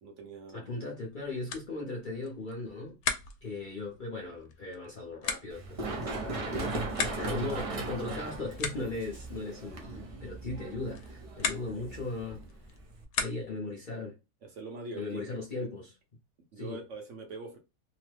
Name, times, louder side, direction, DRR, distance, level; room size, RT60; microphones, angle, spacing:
voice 1, 0.0-0.7 14.4-15.2 15.5-15.7 16.5-17.6, right 3 dB, 60° right, 1.1 m, -43 dB
voice 2, 0.5-3.0 3.4-6.8 7.1-12.4 13.2-14.2 14.9-15.9 16.6-16.8, left 2 dB, 45° left, 0.7 m, -38 dB
sound 1, 0.9-13.8, left 6 dB, 90° left, 1.1 m, -40 dB
Run, 5.5-13.0, right 3 dB, 45° right, 0.4 m, -38 dB
2.9 x 2.0 x 3.2 m
omnidirectional pair, 1.5 m